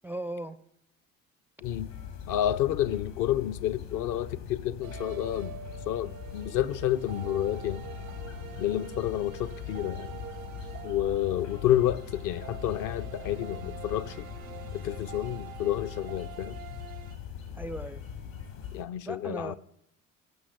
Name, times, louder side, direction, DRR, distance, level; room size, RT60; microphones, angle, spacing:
voice 1, 0.0-0.6 17.6-18.0 19.1-19.6, right 1 dB, 5° right, 0.4 m, -37 dB
sound 1, 1.6-18.8, left 8 dB, 70° left, 2.6 m, -41 dB
voice 2, 2.3-5.6 5.9-7.9 8.6-10.2 10.8-14.3 14.7-16.6 18.7-19.6, left 12 dB, 50° left, 0.6 m, -29 dB
sound 2, 4.8-17.1, right 9 dB, 85° right, 0.8 m, -45 dB
15.5 x 6.2 x 7.9 m
figure-of-eight pair, 55°, 41 cm